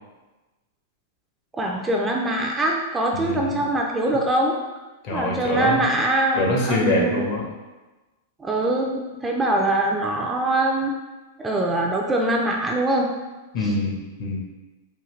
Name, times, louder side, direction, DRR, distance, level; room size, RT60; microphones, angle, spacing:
voice 1, 1.5-4.6 5.1-7.2 8.4-10.9 11.4-13.1, right 1 dB, 15° right, 0 dB, 0.4 m, -23 dB
voice 2, 3.1-3.7 5.0-5.9 6.4-7.5 13.5-14.4, left 2 dB, 50° left, -2 dB, 1.0 m, -24 dB
3.7 x 2.5 x 3.1 m, 1.2 s
hypercardioid pair, 125°, 0 cm